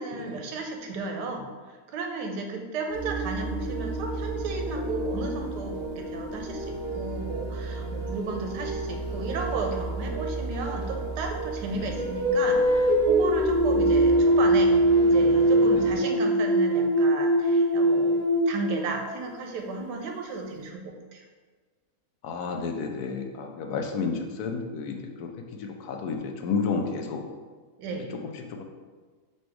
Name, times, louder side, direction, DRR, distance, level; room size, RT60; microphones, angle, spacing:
voice 1, 0.0-14.8 15.1-21.2 27.8-28.1, right 3 dB, 85° right, 3 dB, 1.2 m, -34 dB
sound 1, 2.9-15.9, right 2 dB, 40° right, 1.8 m, -34 dB
sound 2, 12.0-19.3, right 1 dB, 65° right, 0.4 m, -21 dB
voice 2, 22.2-27.2 28.2-28.6, left 5 dB, 75° left, 3 dB, 1.1 m, -32 dB
4.3 x 2.6 x 4.5 m, 1.4 s
omnidirectional pair, 1.7 m